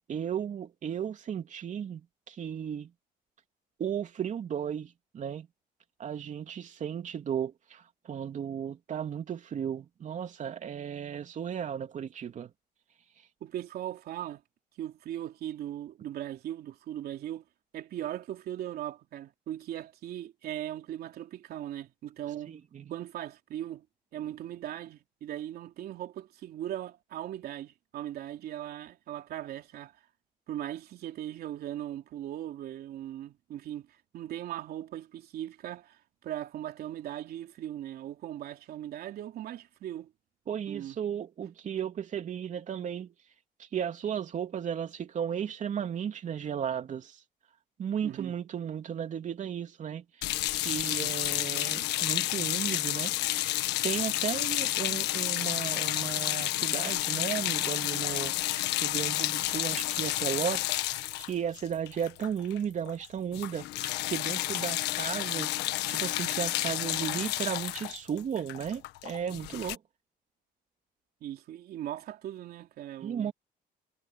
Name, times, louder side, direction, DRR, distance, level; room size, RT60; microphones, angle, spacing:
voice 1, 0.0-2.9 3.8-5.5 6.0-12.5 22.5-22.9 40.5-43.1 43.6-47.2 47.8-50.0 50.5-53.2 53.4-58.3 58.8-69.8 73.0-73.3, right 8 dB, 45° right, 3.2 m, -35 dB
voice 2, 13.4-14.4 14.8-17.4 17.7-22.5 22.9-23.8 24.1-30.0 30.5-40.1 40.7-41.0 48.0-48.3 71.2-73.3, right 12 dB, 65° right, 3.2 m, -39 dB
sound 1, 50.2-62.6 62.9-63.1 63.3-69.8, left 16 dB, 85° left, 1.5 m, -31 dB
cardioid pair, 110°, 17 cm